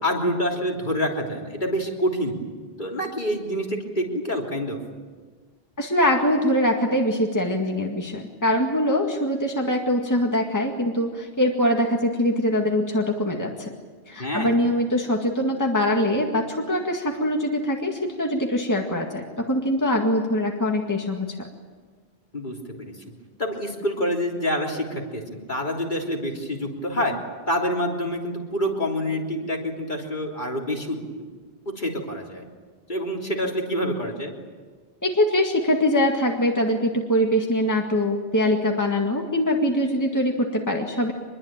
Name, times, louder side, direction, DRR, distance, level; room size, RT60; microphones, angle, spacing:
voice 1, 0.0-2.4 2.8-4.8 14.2-14.5 22.3-23.0 23.4-27.2 27.5-31.0 31.7-32.4 32.9-34.3, equal, 45° left, 0 dB, 3.6 m, -27 dB
voice 2, 5.8-13.7 14.1-21.5 35.0-41.1, left 1 dB, 15° left, 1 dB, 2.0 m, -23 dB
25.0 x 22.0 x 8.9 m, 1.5 s
omnidirectional pair, 1.1 m